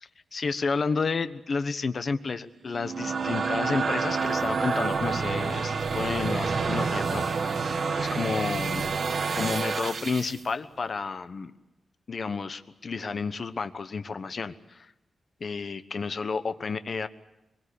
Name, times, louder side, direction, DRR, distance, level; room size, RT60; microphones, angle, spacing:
voice 1, 0.0-7.7 8.0-8.9 9.3-11.5 12.1-14.9 15.4-17.1, left 4 dB, 45° left, 11 dB, 1.1 m, -31 dB
sound 1, 2.7-10.4, right 4 dB, 55° right, 1.9 m, -28 dB
23.0 x 22.5 x 8.6 m, 0.91 s
wide cardioid pair, 130°, 0 cm